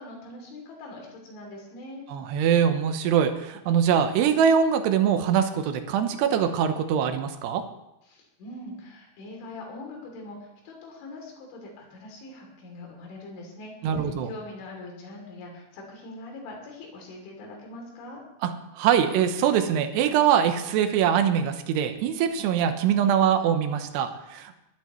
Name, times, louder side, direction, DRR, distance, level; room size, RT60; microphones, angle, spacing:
voice 1, 0.0-2.0 8.1-18.2, left 2 dB, 70° left, 1 dB, 5.3 m, -42 dB
voice 2, 2.1-7.6 13.8-14.3 18.4-24.5, right 8 dB, 75° right, 7 dB, 2.5 m, -23 dB
21.0 x 12.5 x 3.1 m, 0.87 s
omnidirectional pair, 5.8 m